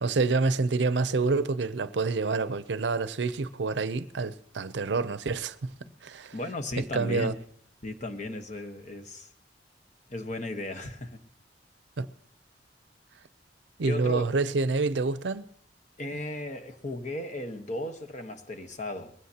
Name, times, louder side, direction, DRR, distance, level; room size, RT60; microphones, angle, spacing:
voice 1, 0.0-5.7 6.0-6.3 6.8-7.3 12.0-12.1 13.8-15.4, right 3 dB, 80° right, 0.6 m, -27 dB
voice 2, 6.3-7.3 7.8-9.3 10.1-11.2 13.8-14.3 16.0-19.1, left 1 dB, 45° left, 1.2 m, -35 dB
20.5 x 16.0 x 2.9 m
head